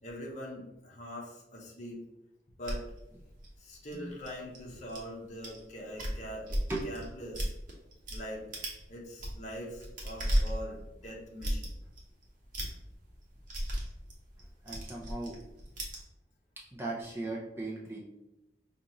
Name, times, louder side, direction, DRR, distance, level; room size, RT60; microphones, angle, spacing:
voice 1, 0.0-2.0 2.6-2.8 3.6-7.5 8.1-8.4 8.9-11.8, equal, 40° left, -3 dB, 0.8 m, -43 dB
sound 1, 2.6-5.0 5.4-5.6 5.9-8.2 8.5-8.8 9.1-16.0, equal, 50° right, 0.9 m, -35 dB
voice 2, 14.4-15.4 16.7-18.0, right 2 dB, 15° right, -3 dB, 0.5 m, -38 dB
5.1 x 2.4 x 2.9 m, 0.92 s
head